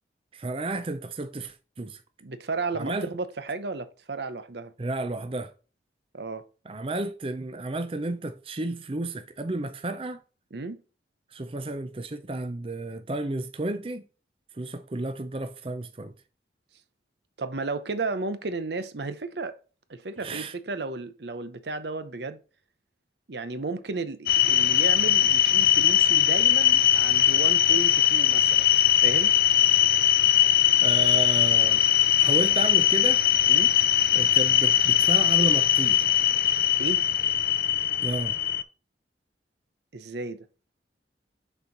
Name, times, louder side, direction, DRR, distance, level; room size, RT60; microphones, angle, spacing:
voice 1, 0.3-2.0 2.7-3.1 4.8-5.5 6.7-10.2 11.3-14.0 14.5-16.1 20.2-20.5 30.8-31.8 32.2-33.2 34.1-36.1 38.0-38.4, right 2 dB, 30° right, 0.5 m, -32 dB
voice 2, 2.2-4.7 6.1-6.4 10.5-10.8 17.4-19.6 19.9-22.4 23.3-28.7 29.0-29.3 33.5-33.7 36.8-37.1 39.9-40.4, right 3 dB, 70° right, 0.8 m, -33 dB
sound 1, 24.3-38.6, left 11 dB, 55° left, 0.5 m, -21 dB
6.8 x 4.5 x 4.0 m
head